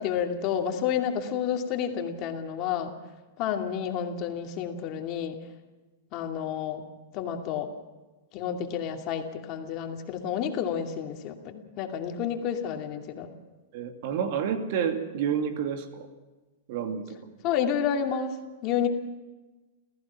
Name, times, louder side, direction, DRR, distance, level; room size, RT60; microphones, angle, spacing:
voice 1, 0.0-2.9 3.4-5.4 6.1-6.8 7.1-7.7 8.3-13.3 17.4-18.4 18.6-18.9, left 8 dB, 45° left, 3 dB, 2.5 m, -30 dB
voice 2, 13.7-16.1 16.7-17.2, right 8 dB, 60° right, 6 dB, 2.5 m, -29 dB
30.0 x 15.0 x 5.9 m, 1.2 s
hypercardioid pair, 125°, 0 cm